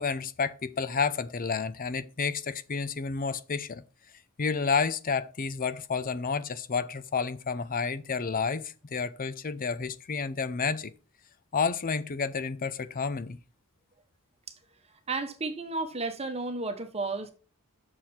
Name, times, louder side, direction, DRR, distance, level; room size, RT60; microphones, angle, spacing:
voice 1, 0.0-3.8 4.4-10.9 11.5-13.4, left 5 dB, 40° left, 0.6 m, -30 dB
voice 2, 14.9-17.3, right 3 dB, 30° right, 1.0 m, -33 dB
7.6 x 6.5 x 4.3 m
head